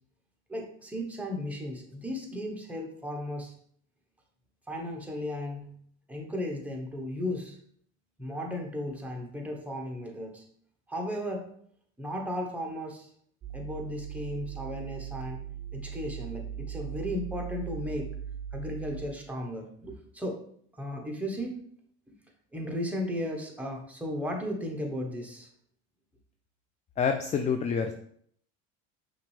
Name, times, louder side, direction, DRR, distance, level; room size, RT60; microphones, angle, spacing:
voice 1, 0.5-3.5 4.7-5.7 6.1-7.6 8.2-10.4 10.9-11.5 12.0-13.1 13.5-15.5 15.7-18.1 18.5-20.4 20.8-21.6 22.5-25.5, left 1 dB, 5° right, 0 dB, 1.2 m, -35 dB
sound 1, 13.4-19.1, right 9 dB, 25° right, 0.6 m, -39 dB
voice 2, 27.0-27.9, left 6 dB, 20° left, 6 dB, 0.3 m, -27 dB
5.7 x 2.7 x 3.4 m, 0.63 s
supercardioid pair, 85°, 35 cm